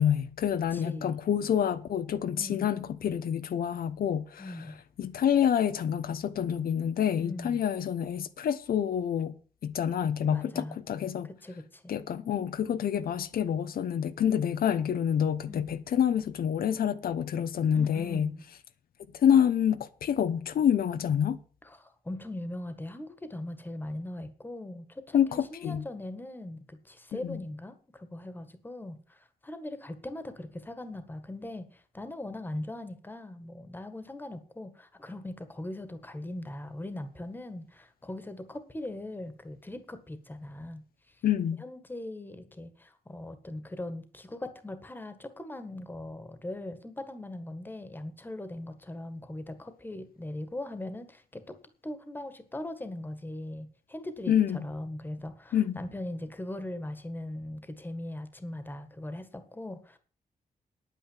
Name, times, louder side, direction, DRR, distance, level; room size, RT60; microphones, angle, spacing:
voice 1, 0.0-4.7 5.0-9.3 9.6-11.3 11.9-18.3 19.1-21.4 25.1-25.8 27.1-27.4 41.2-41.6 54.3-54.6 55.5-55.8, left 9 dB, 85° left, 0.8 m, -27 dB
voice 2, 0.7-1.1 2.4-2.6 4.4-4.7 7.2-7.6 10.3-10.8 11.2-11.9 15.4-15.7 17.7-18.4 21.6-40.8 41.6-51.6 51.8-60.0, left 1 dB, 15° left, 1.7 m, -40 dB
10.0 x 9.2 x 7.4 m
wide cardioid pair, 145°, 15 cm